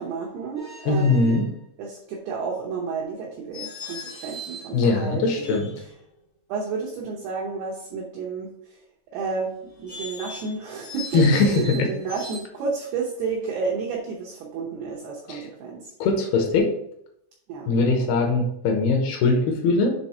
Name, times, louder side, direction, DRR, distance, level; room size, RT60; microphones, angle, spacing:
voice 1, 0.0-1.4 1.8-5.6 6.5-8.8 9.1-15.9 17.5-17.7 18.0-18.4, right 4 dB, 85° right, -2 dB, 2.2 m, -31 dB
sound 1, 0.5-1.5 3.5-4.8 5.3-6.1 9.6-12.4, left 1 dB, 35° left, 0.6 m, -39 dB
voice 2, 0.9-1.4 4.7-5.7 11.1-11.9 15.3-15.5 16.0-16.7 17.7-19.9, left 3 dB, 80° left, 2 dB, 2.3 m, -21 dB
8.3 x 3.6 x 4.3 m, 0.76 s
omnidirectional pair, 5.9 m